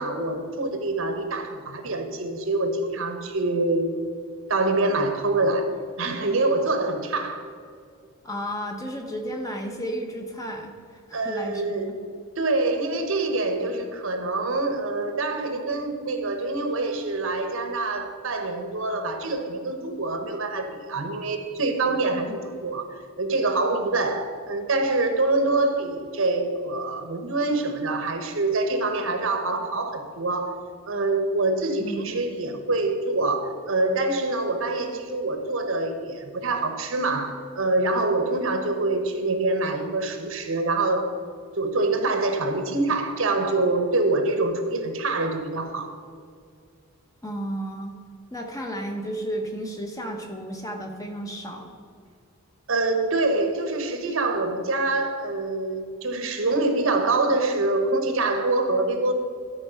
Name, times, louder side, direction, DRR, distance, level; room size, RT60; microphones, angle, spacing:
voice 1, 0.0-3.9 4.5-7.5 11.1-12.0 12.4-41.2 41.6-45.9 52.7-59.1, right 2 dB, 65° right, 6 dB, 1.0 m, -25 dB
voice 2, 8.2-11.9 22.3-22.4 31.8-32.2 47.2-48.0 48.3-51.8, equal, 15° left, 2 dB, 0.9 m, -33 dB
12.0 x 4.6 x 5.5 m, 2.2 s
head